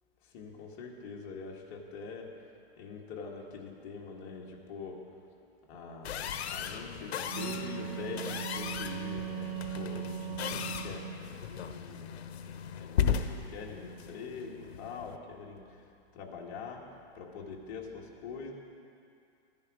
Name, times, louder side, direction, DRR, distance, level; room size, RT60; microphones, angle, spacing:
voice 1, 0.2-2.3 2.8-5.0 5.7-6.2 6.5-11.1 11.5-12.1 12.8-15.8 16.1-16.9 17.1-18.5, left 5 dB, 35° left, -1 dB, 1.8 m, -44 dB
sound 1, 6.0-15.2, left 8 dB, 80° left, 0.9 m, -36 dB
Wind instrument woodwind instrument, 7.1-11.3, right 12 dB, 40° right, 0.5 m, -39 dB
14.5 x 10.5 x 4.9 m, 2.4 s
hypercardioid pair, 155°, 32 cm